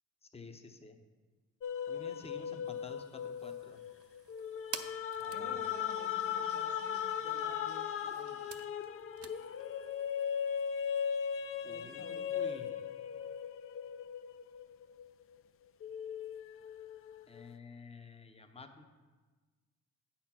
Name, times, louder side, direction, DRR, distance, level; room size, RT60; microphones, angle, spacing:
voice 1, 0.3-1.0 1.9-3.8 5.2-5.6 11.6-12.7 17.3-18.8, left 4 dB, 20° left, 7 dB, 0.7 m, -51 dB
sound 1, 1.6-15.4 15.8-17.4, left 8 dB, 45° left, 0.4 m, -38 dB
voice 2, 1.9-2.6 5.3-8.4 11.6-12.5 12.8-13.0, left 4 dB, 75° left, 2 dB, 1.4 m, -53 dB
sound 2, 2.6-12.7, right 8 dB, 50° right, 0.6 m, -52 dB
8.4 x 4.3 x 5.9 m, 1.3 s
cardioid pair, 90°, 30 cm